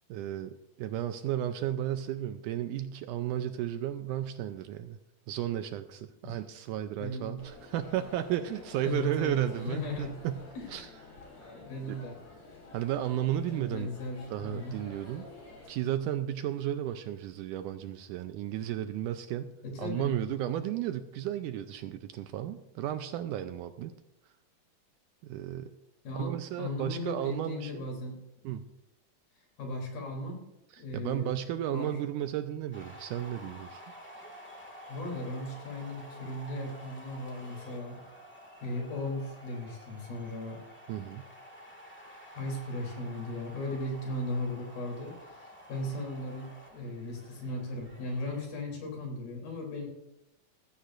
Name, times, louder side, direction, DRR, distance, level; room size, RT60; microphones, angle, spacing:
voice 1, 0.1-5.0 5.3-10.4 10.7-10.9 11.9-12.0 12.7-13.9 14.3-15.3 15.7-19.5 19.8-23.9 25.2-25.7 26.2-27.9 28.4-28.6 30.9-33.8 40.9-41.2, right 11 dB, 80° right, 9 dB, 1.9 m, -33 dB
voice 2, 7.0-7.4 8.8-10.1 10.5-10.9 11.6-12.2 13.5-14.8 19.6-20.2 26.0-28.2 29.6-30.5 30.8-31.4 31.7-32.0 34.9-38.0 38.6-40.6 42.4-49.9, left 1 dB, 85° left, 0 dB, 5.0 m, -37 dB
sound 1, 7.4-15.7, left 2 dB, 45° left, 5.4 m, -50 dB
sound 2, 32.7-48.5, equal, 15° left, 0.3 m, -50 dB
16.5 x 15.5 x 2.5 m, 0.87 s
omnidirectional pair, 4.0 m